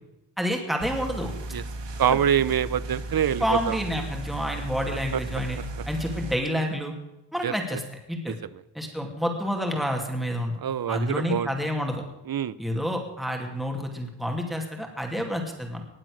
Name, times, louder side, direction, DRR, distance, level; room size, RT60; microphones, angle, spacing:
voice 1, 0.4-1.3 2.1-2.2 3.4-5.6 5.9-6.9 7.3-7.8 8.1-8.4 8.7-10.5 10.9-12.0 12.6-15.9, equal, ahead, 2 dB, 2.5 m, -29 dB
sound 1, 0.8-6.3, right 2 dB, 80° right, 1.6 m, -35 dB
voice 2, 2.0-3.8 5.1-5.2 7.4-7.5 10.6-11.5 12.3-12.6, right 9 dB, 55° right, 18 dB, 0.7 m, -25 dB
19.5 x 7.6 x 6.5 m, 0.95 s
wide cardioid pair, 125°, 42 cm